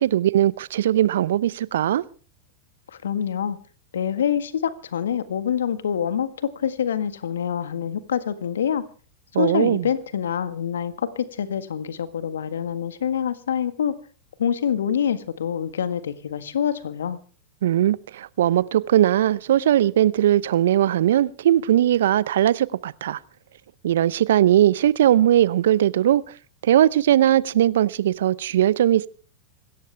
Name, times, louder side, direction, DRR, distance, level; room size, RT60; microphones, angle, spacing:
voice 1, 0.0-2.0 9.3-9.9 17.6-23.2 23.8-26.3 26.6-29.1, right 12 dB, 70° right, 0.7 m, -19 dB
voice 2, 2.9-3.6 3.9-8.8 9.3-13.9 14.4-17.2, left 8 dB, 75° left, 1.6 m, -26 dB
26.0 x 13.5 x 3.4 m
hypercardioid pair, 95°, 0 cm